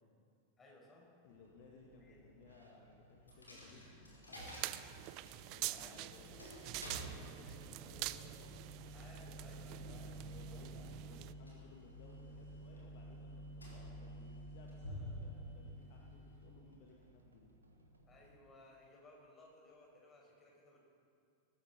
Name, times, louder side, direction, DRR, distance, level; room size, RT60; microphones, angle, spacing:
voice 1, 0.6-1.1 2.0-2.2 5.7-6.5 7.4-8.0 8.9-11.2 18.1-20.8, left 2 dB, 20° left, -2 dB, 5.1 m, -61 dB
voice 2, 1.2-4.5 5.4-6.3 6.7-8.6 9.9-17.5, left 4 dB, 50° left, -1 dB, 1.6 m, -61 dB
sound 1, 1.3-18.4, right 1 dB, 80° right, 1.7 m, -66 dB
Coin (dropping), 3.3-17.0, equal, 80° left, 3.8 m, -50 dB
sound 2, 4.4-11.3, right 17 dB, 40° right, 0.4 m, -46 dB
19.5 x 14.5 x 4.3 m, 2.4 s
figure-of-eight pair, 90°, 0 cm